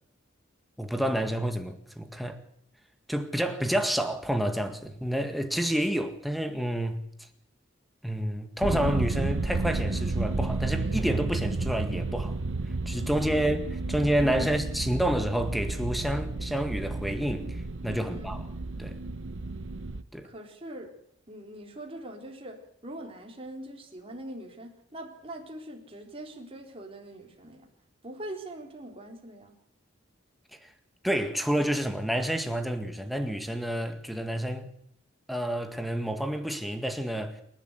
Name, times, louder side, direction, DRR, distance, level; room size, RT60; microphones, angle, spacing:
voice 1, 0.8-2.4 3.1-7.0 8.0-12.4 12.9-18.4 18.8-19.0 20.1-20.3 31.0-34.7 35.3-37.4, equal, ahead, 1.9 m, -29 dB
sound 1, 8.6-20.0, right 3 dB, 75° right, 0.9 m, -31 dB
voice 2, 14.2-14.6 18.0-18.3 20.2-20.9 21.3-27.7 28.0-29.5, right 1 dB, 30° right, 3.8 m, -42 dB
28.0 x 12.0 x 8.3 m
head